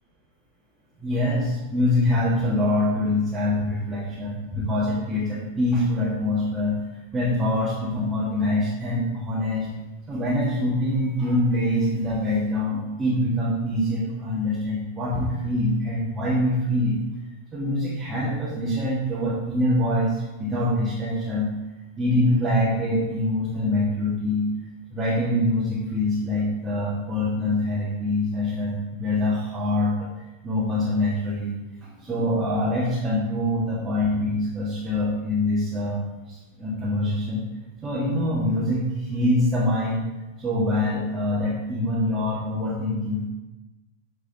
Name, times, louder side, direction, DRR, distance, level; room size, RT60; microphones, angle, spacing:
voice 1, 1.0-9.7 10.1-17.0 17.5-21.5 22.0-24.5 24.9-30.1 30.4-37.4 37.8-40.0 40.4-43.2, left 1 dB, 20° right, -8 dB, 1.6 m, -24 dB
8.4 x 3.9 x 3.9 m, 1.1 s
figure-of-eight pair, 95°, 0 cm